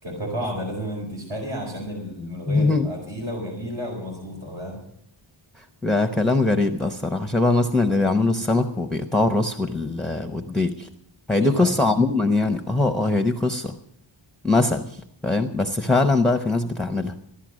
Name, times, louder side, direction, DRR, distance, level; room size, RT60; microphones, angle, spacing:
voice 1, 0.0-4.8 11.4-11.7, equal, 65° right, -2 dB, 4.5 m, -32 dB
voice 2, 2.5-2.9 5.6-10.9 11.3-13.8 14.4-17.1, left 2 dB, ahead, 7 dB, 0.8 m, -22 dB
15.0 x 11.5 x 6.2 m, 0.71 s
wide cardioid pair, 95°, 50 cm